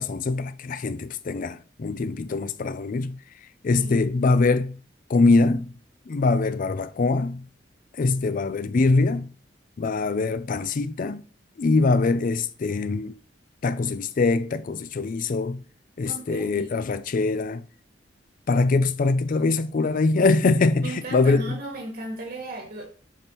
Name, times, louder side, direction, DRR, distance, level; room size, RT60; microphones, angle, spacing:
voice 1, 0.0-3.2 3.6-4.8 5.1-5.7 6.1-7.5 8.0-9.3 9.8-11.2 11.6-13.1 13.6-15.6 16.0-17.6 18.5-21.6, left 3 dB, 50° left, 0.4 m, -23 dB
voice 2, 3.7-4.0 16.0-16.7 20.8-22.9, right 2 dB, 60° right, 2.2 m, -36 dB
7.2 x 5.3 x 3.0 m
head